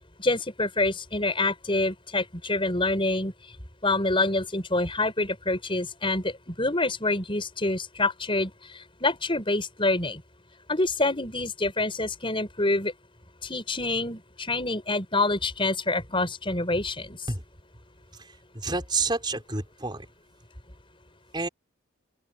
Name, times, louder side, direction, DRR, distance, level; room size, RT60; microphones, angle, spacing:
voice 1, 0.2-3.3 3.8-8.5 9.0-10.2 10.7-12.9 13.4-17.2, left 2 dB, 25° left, 6.0 m, -26 dB
voice 2, 18.2-20.1 21.3-21.5, right 3 dB, 20° right, 5.0 m, -29 dB
open air
head